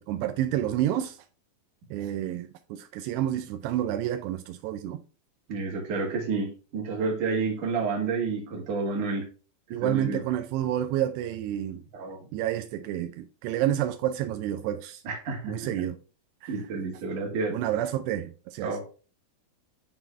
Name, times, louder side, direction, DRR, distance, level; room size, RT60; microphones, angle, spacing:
voice 1, 0.1-1.2 1.9-5.0 9.7-11.8 12.3-15.0 15.4-16.0 16.4-16.6 17.5-18.8, right 12 dB, 90° right, 2.4 m, -29 dB
voice 2, 5.5-9.3 9.8-10.2 11.9-12.3 15.0-15.6 16.5-17.6 18.6-18.8, right 4 dB, 55° right, 2.6 m, -30 dB
8.6 x 3.8 x 3.4 m
omnidirectional pair, 5.3 m